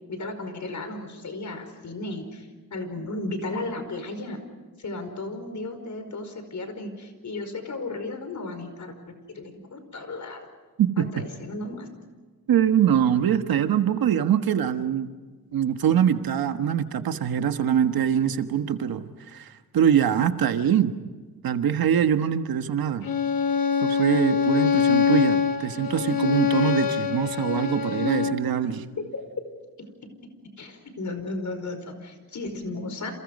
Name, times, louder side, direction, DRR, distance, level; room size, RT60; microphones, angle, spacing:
voice 1, 0.1-4.5 4.8-8.9 9.3-10.4 11.1-11.9 29.0-29.2 29.8-29.9 30.6-33.1, left 2 dB, 55° left, 7 dB, 5.1 m, -34 dB
voice 2, 12.5-15.1 15.5-20.9 21.4-23.1 23.8-28.7, right 9 dB, 90° right, 8 dB, 1.5 m, -23 dB
Bowed string instrument, 23.0-28.5, left 7 dB, 75° left, 1.7 m, -24 dB
29.5 x 28.0 x 5.4 m, 1.3 s
cardioid pair, 100°, 35 cm